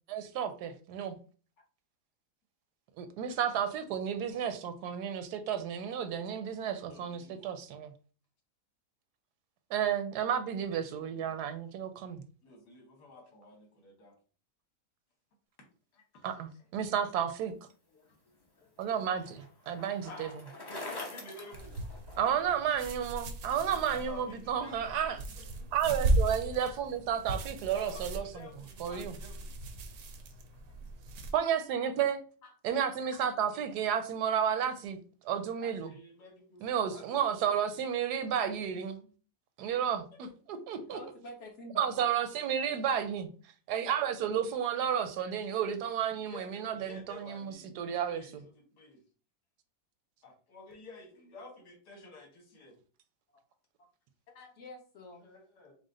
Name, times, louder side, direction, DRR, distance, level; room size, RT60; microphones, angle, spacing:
voice 1, 0.1-1.1 3.0-7.9 9.7-12.2 16.2-17.5 18.8-20.3 22.2-25.2 25.7-28.5 28.8-29.1 31.3-32.2 32.6-35.0 35.2-35.9 36.6-39.1 39.6-40.3 40.7-41.0 41.8-43.3 43.7-48.5, right 8 dB, 80° right, 9 dB, 1.2 m, -32 dB
voice 2, 6.8-7.4 11.0-11.5 12.4-14.2 15.9-16.5 18.0-18.1 20.1-20.4 20.6-21.8 23.7-25.0 25.4-25.7 27.7-29.5 30.3-30.4 30.6-30.9 32.4-32.5 33.0-33.1 35.6-36.6 36.9-37.5 40.8-40.9 46.2-49.0 50.2-52.7 54.4-54.5 55.2-55.7, left 3 dB, 80° left, 1 dB, 1.8 m, -52 dB
Bicycle, 18.1-22.5, left 2 dB, 30° left, 0.4 m, -45 dB
sound 1, 21.5-31.3, right 2 dB, 65° right, 0.8 m, -36 dB
voice 3, 40.9-42.1 53.3-53.4 53.8-53.9 54.6-55.3, left 1 dB, 50° left, 0 dB, 1.2 m, -48 dB
4.8 x 2.0 x 3.7 m, 0.39 s
omnidirectional pair, 1.7 m